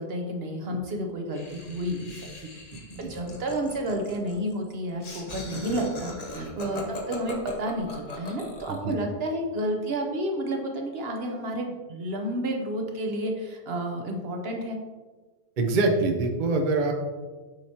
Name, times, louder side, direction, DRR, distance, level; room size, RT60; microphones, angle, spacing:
voice 1, 0.0-2.1 3.0-6.8 7.1-14.8, right 1 dB, 70° right, 2 dB, 1.1 m, -31 dB
Laughter, 1.3-8.9, left 1 dB, 40° left, 1.0 m, -39 dB
voice 2, 15.6-16.9, right 3 dB, 50° right, 2 dB, 0.8 m, -25 dB
7.8 x 4.9 x 2.8 m, 1.3 s
omnidirectional pair, 1.1 m